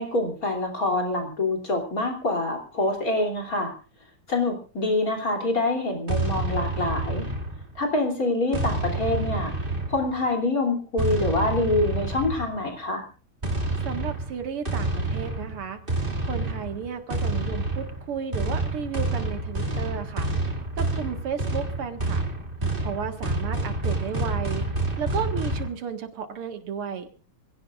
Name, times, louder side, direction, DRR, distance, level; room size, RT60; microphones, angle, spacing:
voice 1, 0.0-3.7 4.3-7.3 7.8-9.5 9.9-13.0, left 2 dB, 40° left, 3 dB, 3.6 m, -25 dB
sound 1, 6.1-7.8 8.5-10.3 11.0-12.6 13.4-25.7, right 2 dB, 25° right, 2.5 m, -28 dB
voice 2, 13.8-15.8 16.3-20.3 20.8-22.2 22.8-24.7 25.0-27.1, right 7 dB, 80° right, 7 dB, 2.7 m, -33 dB
26.5 x 17.0 x 2.5 m, 0.38 s
omnidirectional pair, 2.4 m